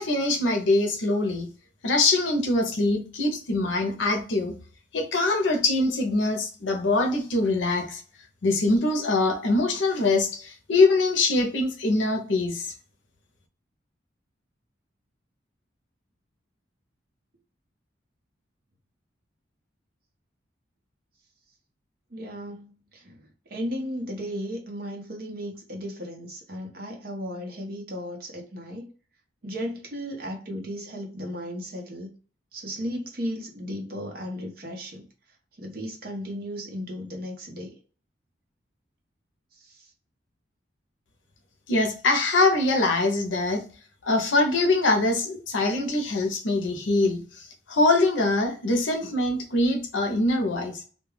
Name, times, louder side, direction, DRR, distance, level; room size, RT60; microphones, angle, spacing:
voice 1, 0.0-1.5 1.8-4.5 4.9-8.0 8.4-12.7 41.7-43.6 44.0-50.8, left 2 dB, 80° left, 0.6 m, -23 dB
voice 2, 22.1-28.9 29.4-32.1 32.5-35.1 35.6-37.7 39.5-39.9, equal, 50° right, 0.7 m, -35 dB
2.3 x 2.1 x 3.2 m
head